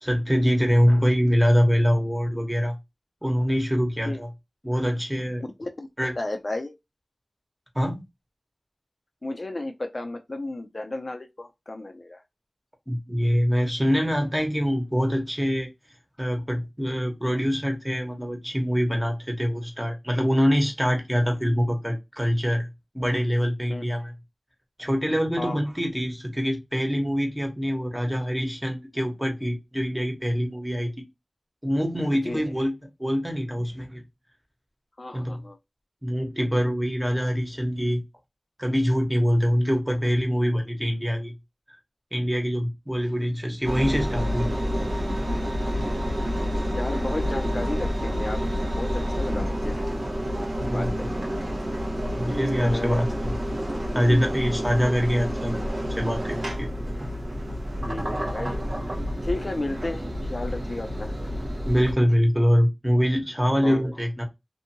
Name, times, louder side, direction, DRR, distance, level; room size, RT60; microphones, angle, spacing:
voice 1, 0.0-2.7 3.2-4.3 4.6-5.4 6.0-6.1 7.7-8.0 12.9-15.7 16.2-22.7 22.9-24.1 24.8-31.0 31.6-32.7 33.0-34.0 35.1-35.4 36.0-38.0 38.6-41.3 42.1-44.7 50.6-50.9 52.2-53.0 53.9-56.7 61.6-64.2, equal, 10° right, 1.0 m, -24 dB
voice 2, 6.2-6.7 9.2-12.2 23.7-23.8 25.4-25.6 32.3-32.5 35.0-35.6 45.8-46.0 46.7-48.4 48.7-49.8 50.7-51.1 52.6-53.0 53.9-54.0 57.9-58.6 59.2-61.2 63.6-63.8, left 2 dB, 50° left, 0.4 m, -33 dB
Engine, 43.6-61.9, equal, 70° right, 0.8 m, -29 dB
2.6 x 2.5 x 2.7 m
wide cardioid pair, 60°, 0 cm